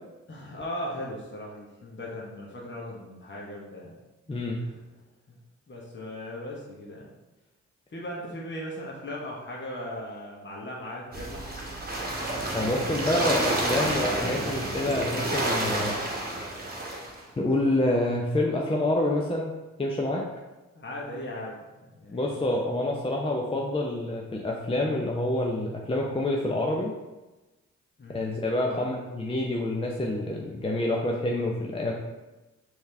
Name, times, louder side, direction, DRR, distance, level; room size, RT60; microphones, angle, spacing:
voice 1, 0.3-4.0 4.3-4.4 4.6-4.8 5.7-7.0 7.9-11.4 20.7-22.3 28.0-28.4 28.7-28.8, left 1 dB, 35° left, -4 dB, 1.2 m, -38 dB
voice 2, 4.3-4.6 12.5-15.9 17.4-19.5 19.8-20.3 22.1-26.9 28.1-31.9, left 1 dB, 15° left, -1 dB, 0.7 m, -27 dB
sound 1, 11.1-17.2, right 1 dB, 25° right, 1.2 m, -29 dB
4.6 x 2.9 x 3.3 m, 1.1 s
hypercardioid pair, 45°, 33 cm